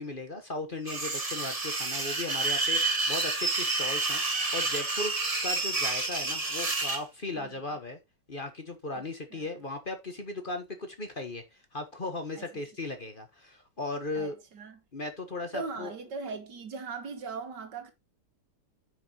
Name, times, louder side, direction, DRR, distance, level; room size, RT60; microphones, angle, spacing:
voice 1, 0.0-5.2 5.4-8.0 8.3-14.3 14.9-15.9, left 2 dB, 30° left, 1.3 m, -37 dB
sound 1, 0.9-7.0, right 3 dB, 20° right, 1.4 m, -29 dB
voice 2, 14.1-14.8 15.5-17.9, right 4 dB, 75° right, 2.2 m, -39 dB
9.7 x 6.3 x 3.0 m
omnidirectional pair, 1.9 m